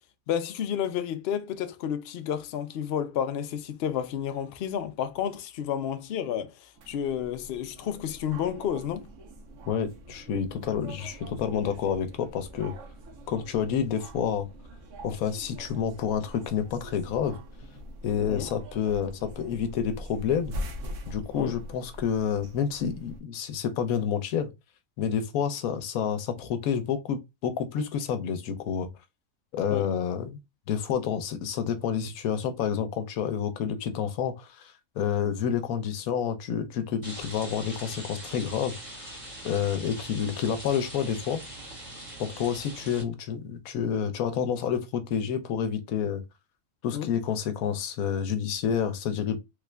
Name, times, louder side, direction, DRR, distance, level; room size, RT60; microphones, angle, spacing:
voice 1, 0.3-9.1 18.3-18.5 21.4-21.6 29.7-29.9 46.9-47.1, left 9 dB, 65° left, 0.6 m, -31 dB
sound 1, 6.8-23.2, equal, 65° right, 1.1 m, -43 dB
voice 2, 9.7-12.7 13.3-14.5 15.0-17.4 18.0-20.6 21.1-24.5 25.0-28.9 29.5-30.4 30.7-39.1 39.4-41.4 42.2-46.2 46.8-49.4, left 8 dB, 85° left, 1.1 m, -29 dB
Rain, 37.0-43.0, right 1 dB, 25° right, 1.2 m, -42 dB
3.4 x 2.4 x 3.2 m
omnidirectional pair, 1.4 m